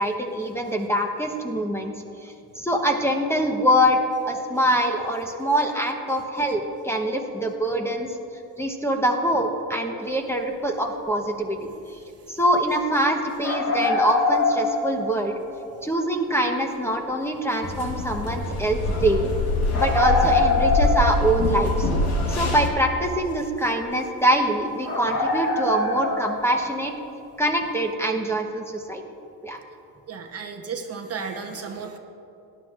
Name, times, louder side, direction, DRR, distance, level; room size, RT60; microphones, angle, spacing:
voice 1, 0.0-1.9 2.2-8.1 8.6-11.7 12.3-15.3 15.8-19.3 19.7-21.9 22.3-26.9 27.4-29.0 29.4-29.6, right 1 dB, 5° left, 3 dB, 0.9 m, -24 dB
sound 1, 13.4-15.4 15.7-15.8 19.7-21.7 22.0-22.1 23.1-23.2 23.6-23.7 24.3-24.5 24.8-26.7, left 3 dB, 55° left, 2.3 m, -24 dB
sound 2, 17.6-22.7, left 2 dB, 75° left, 1.9 m, -24 dB
voice 2, 30.1-32.0, right 5 dB, 35° right, 3 dB, 0.9 m, -33 dB
17.5 x 10.5 x 2.5 m, 2.8 s
cardioid pair, 100°, 41 cm